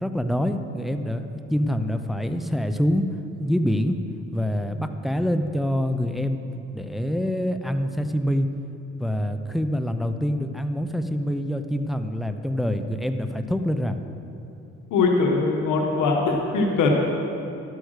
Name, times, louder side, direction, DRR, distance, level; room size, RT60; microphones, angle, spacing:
voice 1, 0.0-3.0 3.4-4.0 4.3-6.4 6.7-8.5 9.0-14.0, equal, ahead, 7 dB, 0.6 m, -25 dB
voice 2, 14.9-16.9, left 4 dB, 90° left, 1 dB, 1.3 m, -21 dB
11.5 x 8.2 x 6.5 m, 2.7 s
cardioid pair, 90°, 30 cm